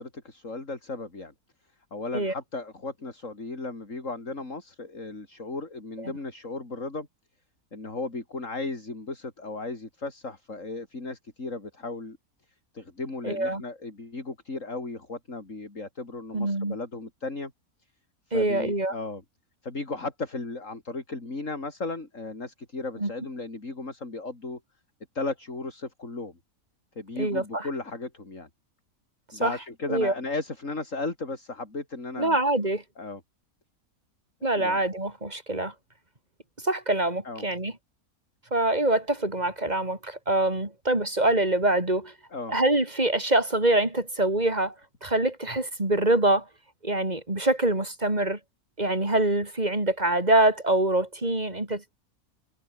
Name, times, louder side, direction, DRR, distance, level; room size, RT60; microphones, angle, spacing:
voice 1, 0.0-1.3 1.9-7.1 7.7-12.2 12.7-17.5 18.3-19.2 19.6-24.6 25.1-26.4 27.0-28.5 29.3-32.4 33.0-33.2 34.5-34.8 37.2-37.5 42.3-42.5, left 3 dB, 60° left, 4.6 m, -35 dB
voice 2, 13.2-13.6 16.3-16.8 18.3-18.9 23.0-23.1 27.2-27.7 29.4-29.6 29.9-30.1 32.2-32.8 34.4-35.7 36.6-37.7 38.5-42.1 42.5-44.7 45.0-46.5 46.8-48.4 48.8-52.0, right 2 dB, 30° right, 4.0 m, -25 dB
omnidirectional pair, 1.5 m